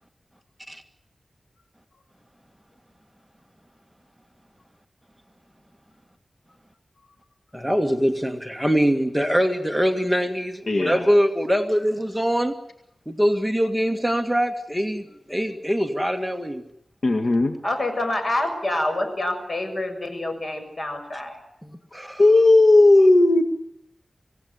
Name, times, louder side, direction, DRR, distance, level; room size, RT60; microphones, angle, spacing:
voice 1, 7.5-12.5 13.1-16.6 21.6-22.2, equal, ahead, 5 dB, 1.9 m, -23 dB
voice 2, 10.7-11.1 17.0-17.6 22.2-23.4, left 2 dB, 65° left, 3 dB, 2.0 m, -15 dB
voice 3, 17.6-21.4, left 1 dB, 50° left, 5 dB, 6.9 m, -27 dB
26.0 x 17.5 x 9.7 m, 0.79 s
wide cardioid pair, 90°, 0 cm